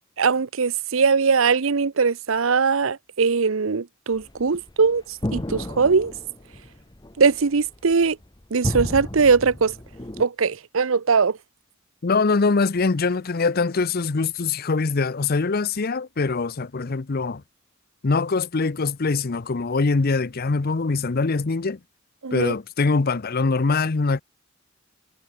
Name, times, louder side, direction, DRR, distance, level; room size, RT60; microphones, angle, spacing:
voice 1, 0.2-6.1 7.2-8.2 8.5-9.7 10.2-11.4 22.2-22.5, right 5 dB, 75° right, 0.7 m, -21 dB
sound 1, 4.1-10.2, left 1 dB, 20° left, 1.0 m, -32 dB
voice 2, 12.0-17.4 18.0-21.8 22.3-24.2, left 4 dB, 50° left, 0.7 m, -23 dB
head